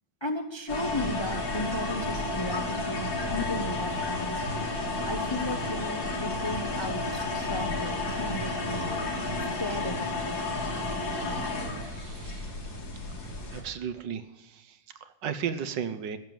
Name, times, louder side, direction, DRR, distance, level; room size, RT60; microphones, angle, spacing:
voice 1, 0.2-4.4 5.1-8.9 9.6-10.3, left 1 dB, 40° left, 6 dB, 0.3 m, -35 dB
sound 1, 0.7-13.6, left 2 dB, 75° left, 3.2 m, -32 dB
voice 2, 11.8-12.5 13.5-14.2 15.2-16.2, right 7 dB, 70° right, 12 dB, 1.5 m, -34 dB
15.5 x 7.2 x 9.2 m, 0.89 s
omnidirectional pair, 2.1 m